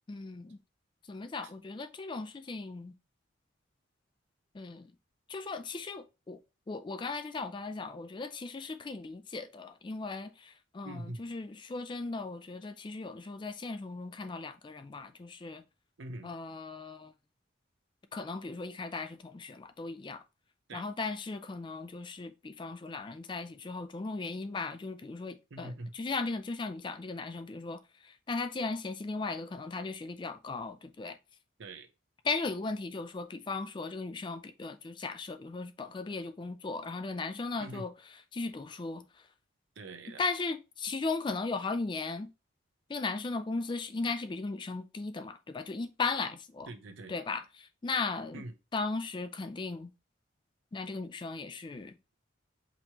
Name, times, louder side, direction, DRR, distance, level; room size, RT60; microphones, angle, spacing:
voice 1, 0.1-0.6 1.1-2.9 4.5-4.9 5.3-6.4 6.7-15.6 16.2-17.1 18.1-20.2 20.7-31.2 32.2-37.9 38.3-39.0 40.2-42.3 42.9-46.7 47.1-48.4 48.7-49.9 50.7-52.0, left 3 dB, 25° left, 0.3 m, -37 dB
voice 2, 10.8-11.2 16.0-16.3 20.7-20.8 25.5-25.9 31.6-31.9 37.6-37.9 39.8-40.2 46.7-47.1 48.3-48.5, right 2 dB, 70° right, 0.8 m, -43 dB
5.1 x 3.0 x 2.9 m
head